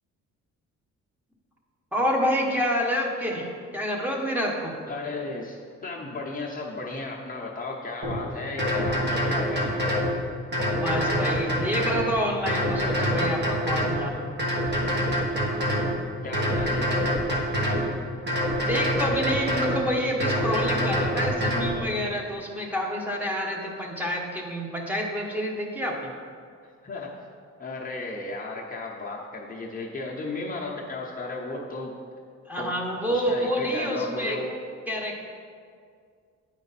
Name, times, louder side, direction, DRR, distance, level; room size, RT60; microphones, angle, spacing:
voice 1, 1.9-4.7 10.7-14.3 18.6-26.1 32.5-34.4 34.9-35.3, equal, 5° right, -1 dB, 1.3 m, -28 dB
voice 2, 4.9-5.6 5.8-9.8 16.2-17.3 26.8-27.2 27.6-32.0 32.6-32.7 33.1-34.5, left 3 dB, 30° left, -3 dB, 0.8 m, -35 dB
sound 1, 8.0-8.2 8.6-10.1 10.5-12.0 12.5-14.0 14.4-15.9 16.3-17.8 18.3-19.8 20.2-21.7, equal, 35° right, 1.6 m, -25 dB
9.0 x 5.1 x 4.2 m, 2.1 s
cardioid pair, 90°, 30 cm